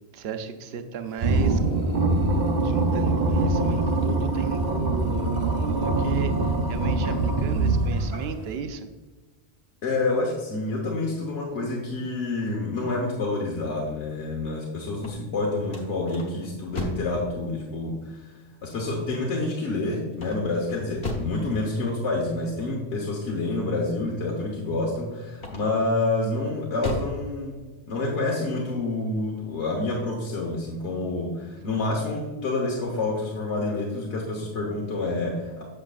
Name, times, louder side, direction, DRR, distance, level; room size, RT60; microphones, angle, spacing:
voice 1, 0.1-1.6 2.6-8.9, right 5 dB, 65° right, 8 dB, 0.8 m, -35 dB
sound 1, 1.2-8.4, right 2 dB, 40° right, 1.0 m, -23 dB
voice 2, 9.8-18.3 18.6-27.6 27.9-35.6, left 2 dB, 85° left, -2 dB, 1.4 m, -28 dB
sound 2, 15.0-17.2 20.1-21.4 25.3-25.9 26.4-27.2, left 2 dB, 65° left, 1.5 m, -34 dB
7.7 x 7.4 x 2.4 m, 1.2 s
omnidirectional pair, 1.2 m